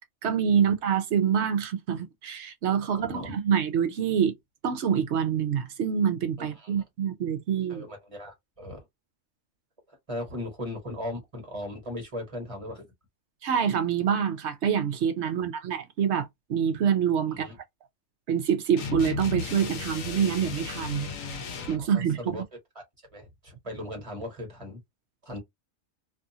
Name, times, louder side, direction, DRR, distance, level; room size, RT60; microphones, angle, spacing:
voice 1, 0.2-4.3 4.6-7.8 13.4-17.5 18.3-21.1 21.7-22.4, right 8 dB, 65° right, 0.8 m, -26 dB
voice 2, 2.9-3.3 6.4-6.7 7.7-8.8 9.9-12.9 17.3-17.6 21.9-22.4 22.7-22.8 23.1-24.8 25.2-25.4, left 1 dB, 25° right, 1.2 m, -38 dB
sound 1, 18.8-21.9, left 4 dB, 85° left, 1.1 m, -34 dB
2.6 x 2.5 x 2.7 m
omnidirectional pair, 1.4 m